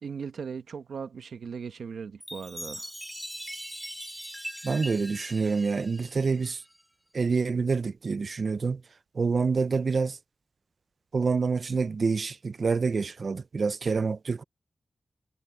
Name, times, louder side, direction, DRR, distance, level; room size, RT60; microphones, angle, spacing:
voice 1, 0.0-2.9, right 6 dB, 90° right, 1.3 m, -38 dB
Chime, 2.2-6.8, equal, ahead, 4.6 m, -41 dB
voice 2, 4.6-6.6 7.1-8.8 9.1-10.2 11.1-14.4, right 4 dB, 60° right, 0.5 m, -27 dB
wide cardioid pair, 85°, 0 cm